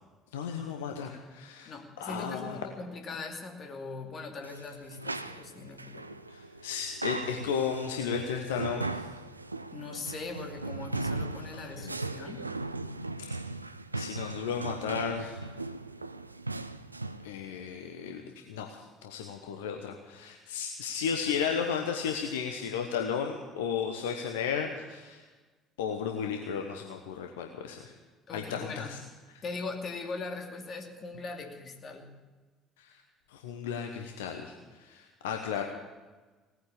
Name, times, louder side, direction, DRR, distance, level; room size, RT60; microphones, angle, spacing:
voice 1, 0.3-1.7 2.0-2.6 6.3-9.1 11.5-11.9 13.2-13.3 13.9-15.4 17.2-18.2 18.5-25.2 25.8-27.9 28.3-29.0 32.8-33.0 33.3-35.6, left 7 dB, 70° left, 4 dB, 1.1 m, -34 dB
voice 2, 1.7-6.0 9.7-12.4 28.3-28.9 29.4-32.1, left 3 dB, 40° left, 3 dB, 2.6 m, -40 dB
sound 1, 4.4-17.3, right 2 dB, 85° right, 0.4 m, -38 dB
18.0 x 9.5 x 8.4 m, 1.3 s
figure-of-eight pair, 55°, 0 cm